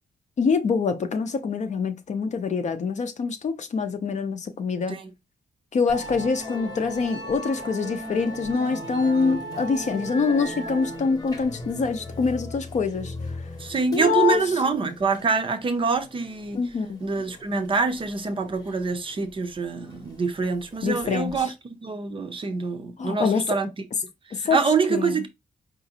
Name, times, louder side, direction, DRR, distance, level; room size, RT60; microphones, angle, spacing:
voice 1, 0.4-5.0 5.7-13.1 13.9-14.4 16.5-17.0 20.8-21.5 23.0-23.4 24.3-24.6 24.9-25.2, left 5 dB, 45° left, 0.6 m, -25 dB
Musical instrument, 5.9-21.4, equal, 20° left, 0.9 m, -38 dB
voice 2, 13.6-16.7 17.0-21.5 21.8-23.7 24.3-25.3, right 4 dB, 30° right, 0.5 m, -25 dB
4.9 x 2.5 x 2.8 m
wide cardioid pair, 175°, 17 cm